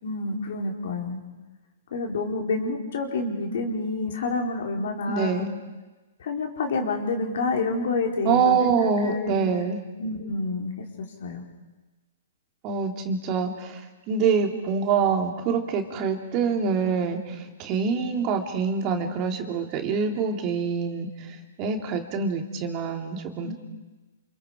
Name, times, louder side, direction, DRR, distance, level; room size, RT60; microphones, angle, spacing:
voice 1, 0.0-1.2 1.9-5.5 6.2-9.4 10.0-10.7 11.2-11.4 23.4-23.5, left 3 dB, 60° left, 1 dB, 4.6 m, -28 dB
voice 2, 5.1-5.5 8.2-9.8 12.6-23.5, right 5 dB, 35° right, 3 dB, 3.1 m, -25 dB
28.0 x 28.0 x 5.0 m, 1.2 s
hypercardioid pair, 125°, 0 cm